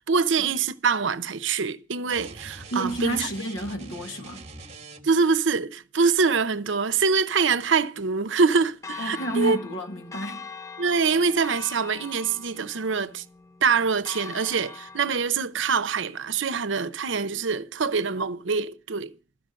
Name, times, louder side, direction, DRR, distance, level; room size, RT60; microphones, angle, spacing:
voice 1, 0.1-3.3 5.0-9.6 10.8-13.2 13.6-19.2, right 5 dB, 70° right, 0.7 m, -24 dB
sound 1, 2.1-5.3, right 3 dB, 35° right, 1.2 m, -43 dB
voice 2, 2.7-4.5 9.0-10.5, right 1 dB, 80° left, 1.7 m, -30 dB
Church bell, 8.8-15.3, left 4 dB, 15° left, 0.5 m, -42 dB
13.0 x 5.9 x 7.6 m
head